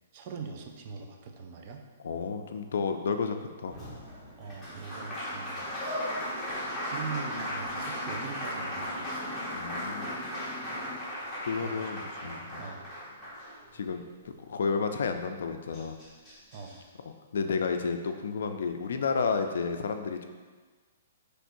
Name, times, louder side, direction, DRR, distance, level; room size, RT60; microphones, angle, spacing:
voice 1, 0.1-1.8 4.4-5.7 6.8-9.3 11.6-12.9 16.5-16.9, right 5 dB, 40° right, 3 dB, 0.5 m, -42 dB
voice 2, 2.0-3.7 9.5-10.1 11.4-12.7 13.7-15.9 17.3-20.2, left 5 dB, 75° left, 6 dB, 0.4 m, -31 dB
Applause, 3.7-14.0 15.4-15.5 15.7-16.7, equal, 5° left, 1.2 m, -37 dB
Motorcycle, 3.7-11.0, equal, 65° right, 1.5 m, -46 dB
5.8 x 3.2 x 2.6 m, 1.4 s
hypercardioid pair, 150°, 0 cm